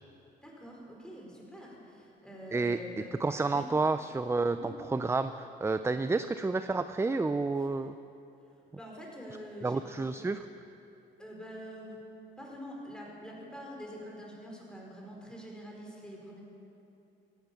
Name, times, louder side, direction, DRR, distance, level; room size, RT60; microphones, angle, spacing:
voice 1, 0.4-3.2 3.5-3.6 4.5-4.7 8.8-9.8 10.1-10.3 11.2-12.0 12.4-16.4, equal, 5° left, -2 dB, 4.8 m, -45 dB
voice 2, 3.2-8.0 9.6-10.4, right 3 dB, 15° right, 11 dB, 0.4 m, -30 dB
17.5 x 12.0 x 7.1 m, 2.8 s
cardioid pair, 90°, 20 cm